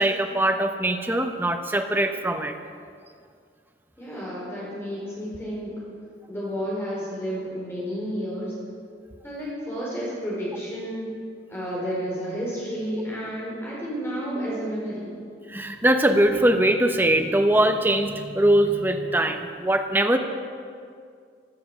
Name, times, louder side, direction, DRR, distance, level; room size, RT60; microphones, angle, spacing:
voice 1, 0.0-2.6 15.5-20.2, right 1 dB, 10° right, 5 dB, 0.8 m, -21 dB
voice 2, 4.0-5.7 6.3-8.5 9.2-11.1 11.5-15.1, equal, 15° left, -6 dB, 4.8 m, -31 dB
15.5 x 12.0 x 6.2 m, 2.2 s
head